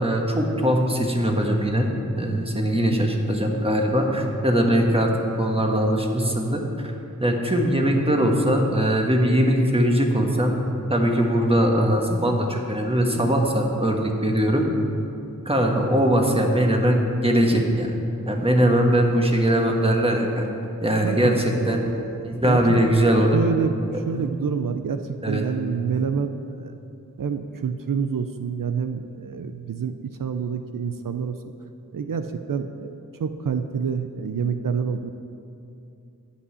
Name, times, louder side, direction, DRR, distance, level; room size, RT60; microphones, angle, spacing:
voice 1, 0.0-1.9 2.2-6.9 7.2-10.6 10.9-14.7 15.4-18.0 18.3-20.5 20.8-21.8 22.2-23.4 24.1-24.2 25.2-25.4, equal, 15° right, 1 dB, 1.4 m, -21 dB
voice 2, 21.0-23.0 23.3-26.7 27.2-31.4 31.9-35.1, right 6 dB, 85° right, 8 dB, 0.5 m, -28 dB
11.5 x 5.5 x 8.1 m, 2.7 s
wide cardioid pair, 50°, 32 cm